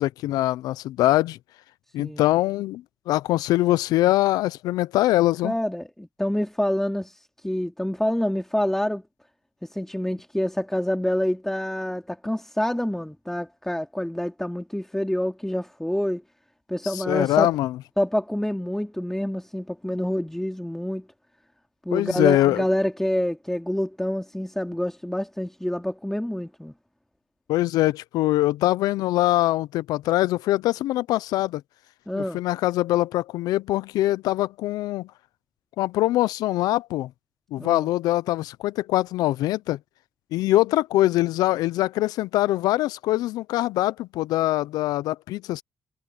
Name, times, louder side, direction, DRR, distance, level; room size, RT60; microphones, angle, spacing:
voice 1, 0.0-1.4 1.9-5.5 16.9-17.8 21.9-22.6 27.5-31.6 32.1-35.1 35.8-37.1 37.5-39.8 40.3-45.6, left 16 dB, 85° left, 0.6 m, -23 dB
voice 2, 5.4-9.0 9.6-16.2 16.7-17.5 18.0-21.1 21.8-26.7 32.1-32.4 37.6-37.9, left 1 dB, 5° left, 2.6 m, -27 dB
supercardioid pair, 45°, 6 cm